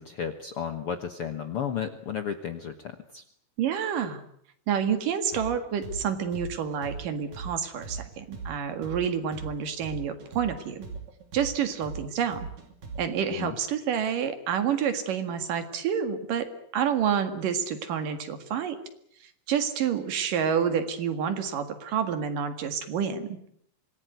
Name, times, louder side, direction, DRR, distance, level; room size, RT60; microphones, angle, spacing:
voice 1, 0.0-3.2 13.3-13.5, left 8 dB, 60° left, 8 dB, 1.5 m, -33 dB
voice 2, 3.6-4.2 4.7-10.9 11.3-12.5 13.0-16.5 16.7-18.8 19.5-23.3, right 7 dB, 70° right, 9 dB, 3.5 m, -28 dB
sound 1, 5.3-13.3, right 4 dB, 50° right, 4.1 m, -39 dB
25.5 x 19.0 x 9.2 m, 0.68 s
omnidirectional pair, 4.1 m